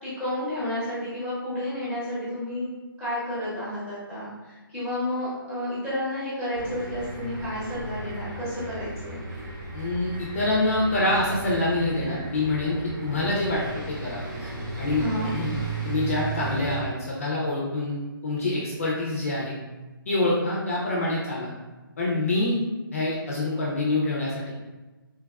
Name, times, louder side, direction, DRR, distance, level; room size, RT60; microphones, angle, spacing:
voice 1, 0.0-2.7 3.0-9.2 14.9-15.3, left 1 dB, 10° right, -12 dB, 0.9 m, -31 dB
sound 1, 6.5-16.8, right 3 dB, 55° right, 1.0 m, -35 dB
voice 2, 9.7-14.5 14.8-15.0 15.3-15.5 15.8-19.5 20.1-21.5 22.0-22.6 22.9-24.5, left 2 dB, 35° left, -5 dB, 0.5 m, -26 dB
3.2 x 2.2 x 2.3 m, 1.2 s
hypercardioid pair, 170°, 12 cm